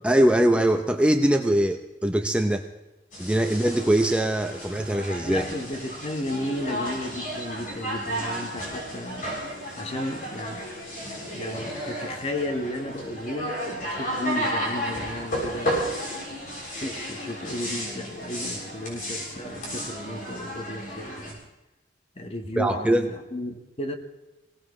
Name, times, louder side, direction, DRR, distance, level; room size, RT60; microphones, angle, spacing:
voice 1, 0.0-2.7 3.2-5.4 22.6-23.1, right 1 dB, 5° right, 5 dB, 0.6 m, -22 dB
sound 1, 3.1-21.3, equal, 50° left, 6.8 m, -33 dB
voice 2, 5.2-9.4 9.8-10.7 11.3-15.9 16.8-21.4 22.1-23.9, left 1 dB, 35° left, 6 dB, 1.4 m, -34 dB
21.0 x 18.5 x 3.2 m, 1.0 s
head